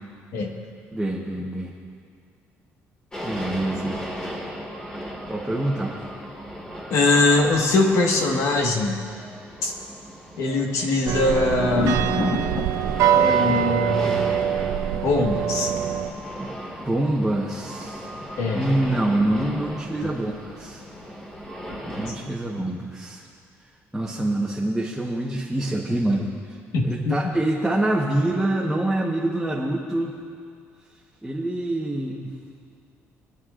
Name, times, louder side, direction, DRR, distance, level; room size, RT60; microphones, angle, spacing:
voice 1, 0.9-1.7 3.2-4.0 5.3-6.0 16.4-16.5 16.8-18.1 18.5-20.8 21.9-23.2 23.9-26.3 26.8-30.1 31.2-32.3, right 1 dB, 5° right, -5 dB, 1.1 m, -25 dB
sound 1, 3.1-22.1, equal, 15° left, 1.9 m, -36 dB
voice 2, 6.9-9.0 9.6-9.7 10.4-12.0 13.1-14.1 15.0-15.7 18.4-18.7 20.0-20.1 26.7-27.1, left 2 dB, 70° left, 1 dB, 1.5 m, -22 dB
sound 2, 11.1-16.1, right 10 dB, 80° right, 0.5 m, -23 dB
Thunder, 11.5-21.1 21.4-22.1, left 2 dB, 35° left, 1.4 m, -35 dB
27.0 x 9.4 x 2.5 m, 2.3 s
cardioid pair, 135°, 5 cm